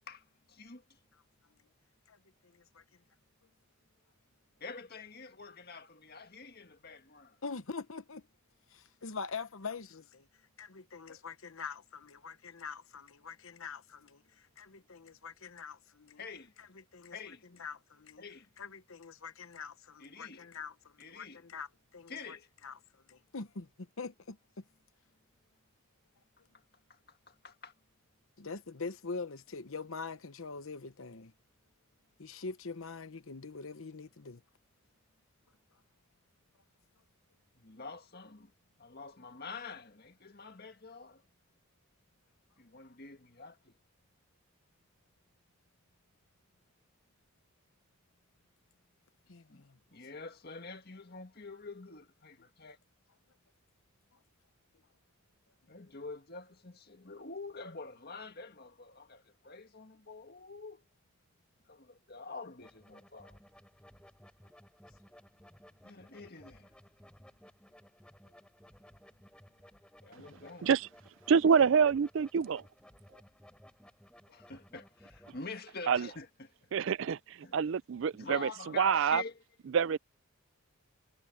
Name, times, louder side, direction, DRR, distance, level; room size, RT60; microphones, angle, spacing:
voice 1, 0.5-0.8 4.6-7.4 11.1-11.2 16.2-16.5 17.1-17.4 18.2-18.5 20.0-20.5 21.0-21.4 22.1-22.5 26.9-27.7 37.6-38.5 38.8-41.2 42.6-43.7 49.5-49.7 49.9-52.8 55.7-60.8 61.7-63.4 65.8-66.7 70.0-70.7 74.3-76.5 77.4-77.6 78.1-79.4, left 4 dB, 45° left, 1.8 m, -47 dB
voice 2, 7.4-8.2 8.7-10.3 10.6-14.2 14.6-16.2 16.6-17.2 17.6-18.2 18.6-22.4 22.6-22.8 23.1-24.6 28.4-31.3 32.2-34.4 49.3-49.8, left 4 dB, 70° left, 1.0 m, -44 dB
sound 1, 62.6-75.4, equal, 5° left, 3.3 m, -58 dB
voice 3, 71.3-72.6 75.9-76.1 76.7-78.5 78.8-79.2 79.7-80.0, right 6 dB, 60° right, 0.4 m, -26 dB
head